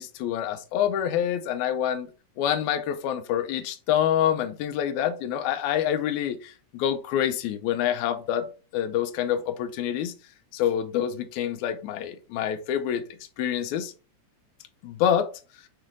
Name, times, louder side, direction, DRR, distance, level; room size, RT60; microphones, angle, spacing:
voice 1, 0.0-2.1 2.4-8.5 8.7-10.1 10.5-13.0 13.4-13.9 14.8-15.3, left 10 dB, 85° left, 2.0 m, -26 dB
5.6 x 3.3 x 2.5 m
omnidirectional pair, 3.3 m